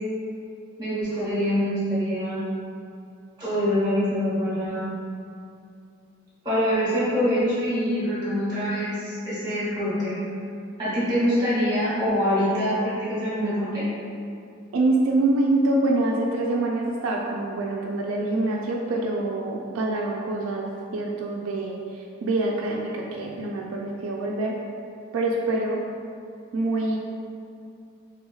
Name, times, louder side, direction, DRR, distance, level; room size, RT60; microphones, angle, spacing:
voice 1, 0.8-2.4 3.4-4.9 6.4-10.2 10.8-13.9, equal, 20° right, -10 dB, 1.3 m, -25 dB
voice 2, 14.7-21.8 22.2-24.6 25.1-25.8 26.5-27.0, right 2 dB, 80° right, -1 dB, 0.3 m, -25 dB
3.4 x 3.0 x 2.3 m, 2.5 s
head